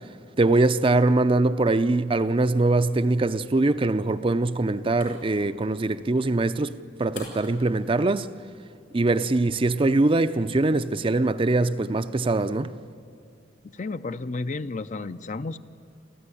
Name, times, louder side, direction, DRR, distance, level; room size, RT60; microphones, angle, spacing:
voice 1, 0.4-8.3 8.9-12.7, right 2 dB, 30° right, 0.5 m, -22 dB
sound 1, 4.3-9.3, left 3 dB, 90° left, 6.2 m, -49 dB
voice 2, 13.7-15.6, left 3 dB, 45° left, 0.6 m, -32 dB
28.0 x 14.0 x 9.9 m
head